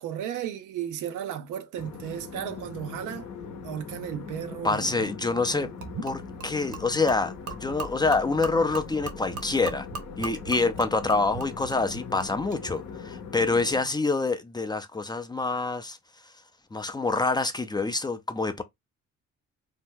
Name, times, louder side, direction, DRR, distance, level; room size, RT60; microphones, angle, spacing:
voice 1, 0.0-3.3 3.6-5.1 5.5-5.7 13.8-13.9, right 10 dB, 90° right, 0.6 m, -35 dB
sound 1, 1.7-13.8, left 5 dB, 60° left, 0.7 m, -41 dB
voice 2, 4.6-5.7 6.0-9.9 10.2-16.0 16.7-18.6, left 3 dB, 15° left, 0.4 m, -26 dB
Gurgling / Liquid, 5.8-12.6, right 3 dB, 70° right, 1.0 m, -40 dB
2.8 x 2.2 x 3.4 m
cardioid pair, 90°, 30 cm